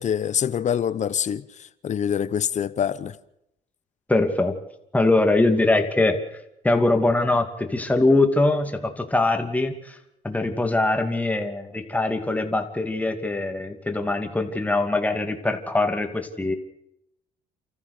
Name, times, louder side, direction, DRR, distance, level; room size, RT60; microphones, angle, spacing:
voice 1, 0.0-1.4 1.8-3.2, left 8 dB, 45° left, 1.0 m, -25 dB
voice 2, 4.1-4.6 4.9-6.2 6.6-10.0 10.2-16.5, left 2 dB, 10° left, 2.6 m, -22 dB
29.5 x 14.0 x 6.7 m
cardioid pair, 110°, 17 cm